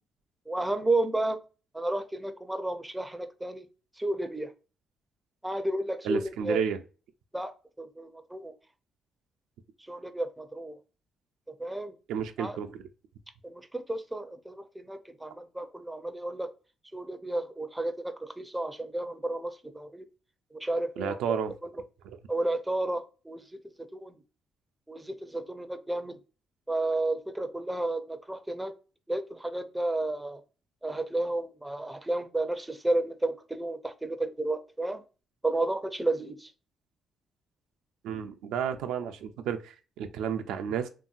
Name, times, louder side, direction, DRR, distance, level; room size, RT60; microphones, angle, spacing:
voice 1, 0.5-1.4 1.7-3.7 4.0-4.5 5.4-6.6 7.3-7.5 7.8-8.5 9.9-10.8 11.6-11.9 12.4-12.6 13.4-16.5 16.9-20.0 20.5-21.4 22.3-23.4 23.9-24.1 24.9-26.2 26.7-28.7 29.1-30.4 30.8-35.0 35.4-36.5, right 2 dB, 10° right, 0.4 m, -32 dB
voice 2, 6.0-6.8 12.1-12.8 21.0-21.5 22.0-22.2 38.0-40.9, right 8 dB, 90° right, 0.4 m, -32 dB
3.1 x 2.7 x 2.3 m
cardioid pair, 90°, 0 cm